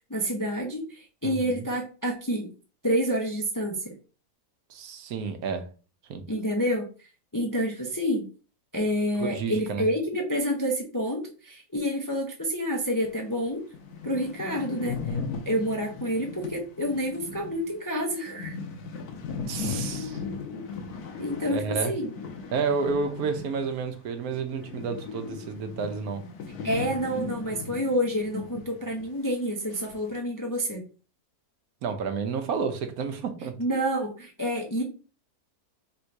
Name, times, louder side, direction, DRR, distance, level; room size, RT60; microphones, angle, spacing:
voice 1, 0.1-2.5 2.8-3.9 6.3-6.9 7.3-8.3 8.7-13.6 14.0-15.2 15.5-18.6 21.2-22.1 26.5-30.8 33.6-34.8, equal, 20° left, 0.5 m, -28 dB
voice 2, 1.2-1.6 4.7-5.7 6.1-6.2 9.2-9.9 19.5-20.2 21.5-21.9 22.5-26.2 31.8-33.6, right 5 dB, 75° right, 1.2 m, -30 dB
sound 1, 13.0-13.1 13.5-13.6 13.7-24.0 24.2-28.7 29.0-29.1 29.7-30.2, left 4 dB, 90° left, 1.3 m, -37 dB
3.7 x 2.6 x 4.5 m
omnidirectional pair, 1.6 m